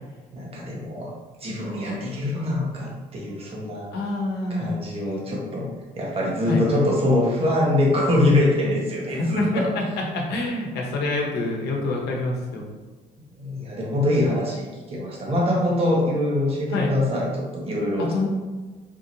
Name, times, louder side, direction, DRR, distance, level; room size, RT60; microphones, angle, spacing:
voice 1, 0.3-1.1 1.4-3.9 4.5-5.7 6.0-9.7 13.4-18.3, left 1 dB, 35° right, -3 dB, 1.1 m, -24 dB
voice 2, 3.9-4.8 6.5-6.8 9.2-9.8 10.1-12.7 16.7-16.9 18.0-18.3, left 2 dB, 75° left, 0 dB, 1.0 m, -26 dB
4.5 x 2.8 x 2.6 m, 1.3 s
cardioid pair, 110°, 17 cm